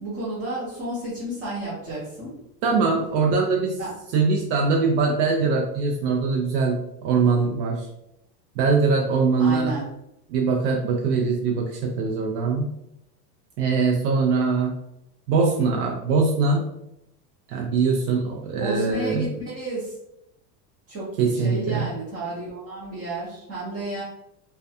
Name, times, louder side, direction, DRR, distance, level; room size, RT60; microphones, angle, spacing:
voice 1, 0.0-2.4 3.8-3.9 9.4-9.8 18.6-19.9 20.9-24.0, right 2 dB, 25° right, -10 dB, 0.6 m, -32 dB
voice 2, 2.6-3.8 4.1-7.9 8.6-9.7 10.3-12.7 13.6-14.7 15.3-16.6 17.5-19.3 21.2-21.9, right 4 dB, 85° right, 0 dB, 0.6 m, -22 dB
2.3 x 2.2 x 2.6 m, 0.81 s
supercardioid pair, 160°, 50 cm